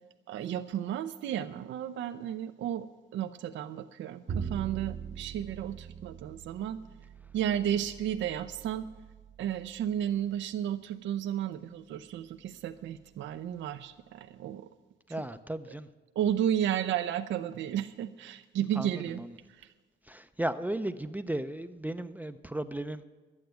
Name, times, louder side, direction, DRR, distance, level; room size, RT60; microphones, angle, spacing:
voice 1, 0.3-2.9 3.1-6.8 7.3-8.9 9.4-14.7 16.2-19.2 19.5-19.7, right 10 dB, 70° right, 9 dB, 0.5 m, -33 dB
Bowed string instrument, 4.3-10.5, right 7 dB, 45° right, 0.9 m, -42 dB
voice 2, 15.1-15.9 18.8-19.3 20.1-23.0, right 1 dB, 10° right, 9 dB, 0.5 m, -35 dB
11.5 x 8.9 x 9.2 m, 1.3 s
cardioid pair, 90°, 20 cm